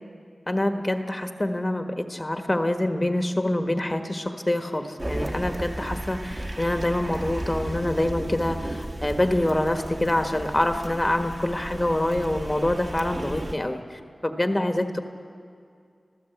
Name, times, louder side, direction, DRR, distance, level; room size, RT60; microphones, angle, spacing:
voice 1, 0.5-15.0, left 1 dB, 25° left, 6 dB, 1.5 m, -26 dB
sound 1, 5.0-13.6, right 1 dB, 35° right, 2.2 m, -34 dB
26.5 x 15.5 x 8.1 m, 2.3 s
cardioid pair, 50°, 0 cm